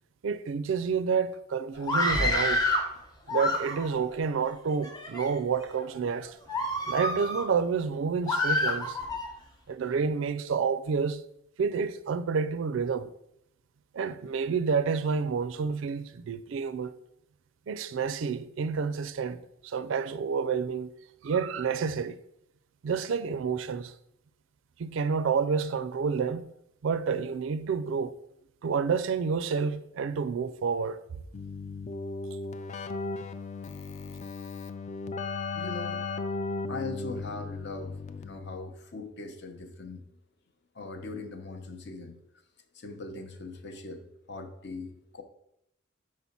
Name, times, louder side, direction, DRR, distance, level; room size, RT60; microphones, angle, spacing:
voice 1, 0.2-2.7 3.3-6.4 6.8-9.0 9.7-11.2 11.6-13.1 13.9-17.0 17.7-20.9 21.2-22.2 22.8-23.9 24.8-26.5 26.8-28.2 28.6-31.0, right 5 dB, 65° right, 0.4 m, -29 dB
Screaming, 1.8-2.9 3.3-4.0 4.7-5.3 5.8-6.0 6.5-7.5 8.3-9.3, left 2 dB, 20° left, 0.8 m, -28 dB
Keyboard (musical), 31.3-38.6, left 3 dB, 35° left, 0.3 m, -36 dB
voice 2, 35.5-36.1 36.7-40.0 40.7-42.2 42.7-45.2, left 3 dB, 55° left, 0.7 m, -40 dB
4.8 x 4.1 x 5.8 m
head